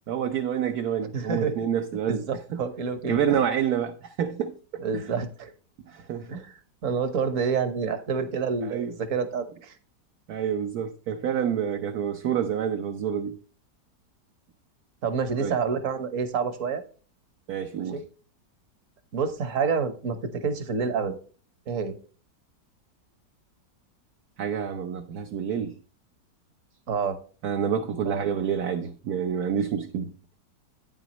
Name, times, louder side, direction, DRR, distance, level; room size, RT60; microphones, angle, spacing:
voice 1, 0.1-2.2 2.5-2.6 3.1-5.1 5.9-6.3 8.6-8.9 10.3-13.4 15.4-15.5 17.5-18.0 24.4-25.8 27.4-30.1, right 8 dB, 65° right, 1.2 m, -28 dB
voice 2, 1.1-1.5 2.1-3.4 4.8-5.5 6.3-6.5 6.8-9.8 15.0-16.8 17.9-18.0 19.1-21.2 21.7-22.0 26.9-27.2 28.0-28.2, right 5 dB, 50° right, 1.4 m, -28 dB
9.4 x 9.1 x 3.0 m
omnidirectional pair, 1.9 m